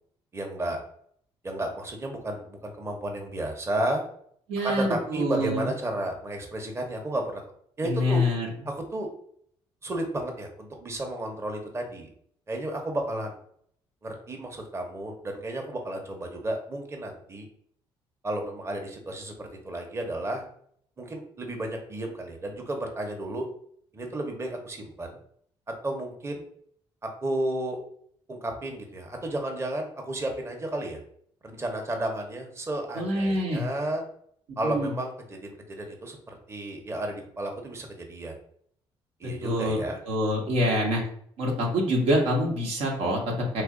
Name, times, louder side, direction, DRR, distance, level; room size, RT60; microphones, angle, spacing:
voice 1, 0.3-0.8 1.4-4.0 4.6-7.4 7.8-8.2 8.7-9.1 9.8-12.1 12.5-13.4 14.0-17.5 18.2-20.4 21.0-23.5 23.9-25.2 25.8-26.4 27.2-27.8 28.3-31.0 31.4-34.0 34.6-38.3 39.2-40.0, right 1 dB, 25° right, 2 dB, 0.8 m, -32 dB
voice 2, 4.5-5.7 7.8-8.5 32.9-33.6 34.6-35.0 39.4-39.8 40.0-41.0 41.4-43.6, equal, 85° right, -1 dB, 0.9 m, -26 dB
3.0 x 2.5 x 3.7 m, 0.64 s
cardioid pair, 80°, 10 cm